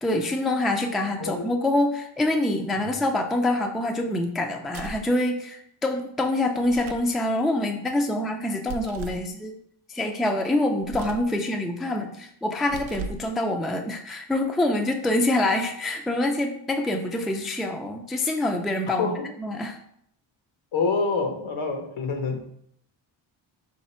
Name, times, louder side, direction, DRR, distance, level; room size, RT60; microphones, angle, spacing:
voice 1, 0.0-9.5 9.9-19.1 19.4-19.8, left 1 dB, ahead, 3 dB, 0.3 m, -25 dB
voice 2, 1.2-1.5 2.8-3.0 18.9-19.2 20.7-22.5, left 4 dB, 75° left, 4 dB, 1.0 m, -27 dB
sound 1, 4.7-5.1 6.6-7.1 8.7-9.3 10.8-11.3 12.6-13.3, right 4 dB, 75° right, 0.6 m, -37 dB
3.9 x 2.8 x 4.2 m, 0.70 s
cardioid pair, 90°, 48 cm